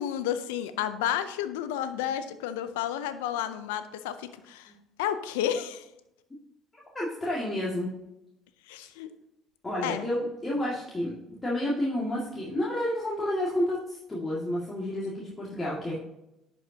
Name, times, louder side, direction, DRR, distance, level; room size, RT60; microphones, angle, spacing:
voice 1, 0.0-4.7 5.0-5.8 8.7-9.1 9.8-10.1, left 10 dB, 80° left, 12 dB, 0.5 m, -31 dB
voice 2, 6.9-7.9 9.6-11.1 11.4-16.0, left 1 dB, 20° left, -6 dB, 2.1 m, -30 dB
11.0 x 5.4 x 2.8 m, 0.89 s
hypercardioid pair, 60°, 0 cm